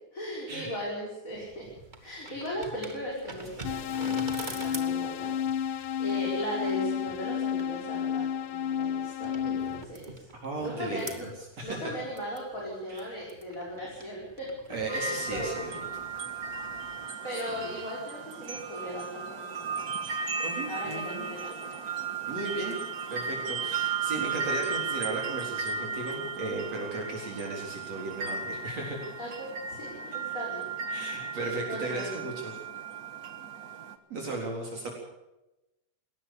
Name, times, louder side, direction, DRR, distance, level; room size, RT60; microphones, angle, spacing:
voice 1, 0.1-1.7 2.0-10.3 10.6-11.3 11.6-14.5 14.8-15.9 17.2-19.9 20.7-21.8 29.2-30.7 31.7-32.3, equal, 25° left, -4 dB, 6.3 m, -38 dB
sound 1, 1.3-17.0, right 2 dB, 15° right, 2.1 m, -47 dB
sound 2, 3.6-9.8, left 9 dB, 70° left, 1.2 m, -31 dB
voice 2, 10.4-11.3 11.6-11.9 12.9-13.1 14.7-15.7 17.5-17.6 20.0-21.2 22.3-22.8 23.1-29.1 30.3-30.4 30.9-32.5 34.1-34.9, right 2 dB, 60° right, -1 dB, 5.1 m, -36 dB
sound 3, 14.9-34.0, right 5 dB, 40° right, 1.5 m, -35 dB
21.5 x 18.5 x 6.8 m, 0.95 s
omnidirectional pair, 3.4 m